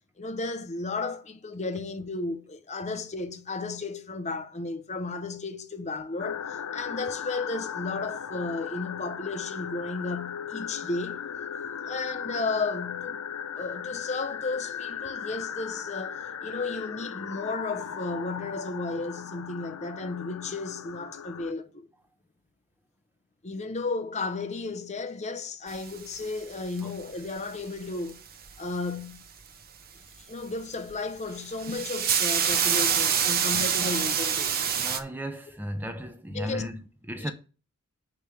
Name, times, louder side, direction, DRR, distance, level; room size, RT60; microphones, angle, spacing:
voice 1, 0.2-11.2 11.8-13.2 13.5-21.9 23.4-28.2 28.6-29.2 30.3-34.7 36.3-36.7 37.2-37.3, left 3 dB, 30° left, 0.8 m, -34 dB
sound 1, 6.2-21.5, left 8 dB, 70° left, 0.6 m, -37 dB
sound 2, 25.7-26.8 28.1-28.6 30.7-31.0 31.3-35.0, right 7 dB, 40° right, 0.8 m, -26 dB
voice 2, 34.8-37.3, equal, 10° right, 0.8 m, -35 dB
9.8 x 3.3 x 6.8 m
head